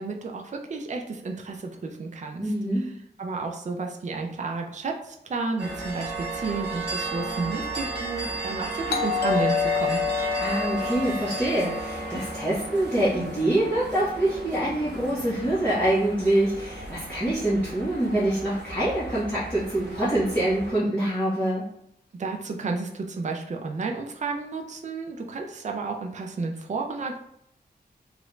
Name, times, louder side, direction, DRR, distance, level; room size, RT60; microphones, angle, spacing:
voice 1, 0.0-2.9 3.2-10.0 22.2-27.2, right 3 dB, 45° right, 2 dB, 0.4 m, -32 dB
voice 2, 2.4-2.9 10.4-21.6, right 1 dB, 10° left, -12 dB, 1.2 m, -25 dB
sound 1, 5.6-20.7, right 3 dB, 80° right, 0.9 m, -35 dB
Doorbell, 8.9-13.5, left 7 dB, 70° left, 0.5 m, -29 dB
3.0 x 2.5 x 3.1 m, 0.75 s
wide cardioid pair, 85°, 17 cm